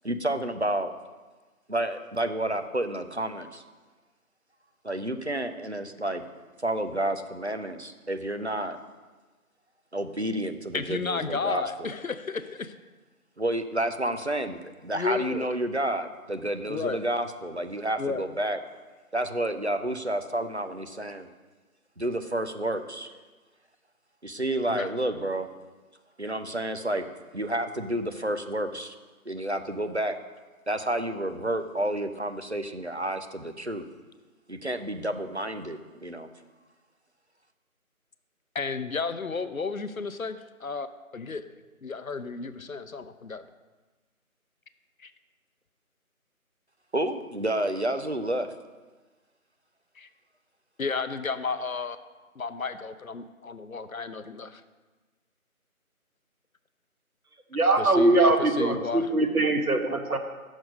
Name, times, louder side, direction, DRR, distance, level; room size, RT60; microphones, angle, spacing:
voice 1, 0.0-0.9 1.7-3.6 4.8-6.2 6.6-8.8 9.9-11.9 13.4-18.6 19.1-21.3 22.0-23.1 24.2-25.5 26.2-27.1 27.3-28.9 29.3-30.2 30.7-33.9 34.5-36.3 46.9-48.5, right 1 dB, 50° right, 8 dB, 0.5 m, -30 dB
voice 2, 10.7-12.7 14.9-15.5 16.7-17.0 18.0-18.3 24.7-24.9 38.5-40.9 41.1-41.4 41.8-43.4 45.0-45.1 50.0-50.1 50.8-52.0 52.4-54.6 57.8-59.1, left 4 dB, 70° left, 11 dB, 0.6 m, -32 dB
voice 3, 57.5-60.2, right 2 dB, 80° right, 5 dB, 1.2 m, -22 dB
6.2 x 5.2 x 6.6 m, 1.3 s
figure-of-eight pair, 175°, 43 cm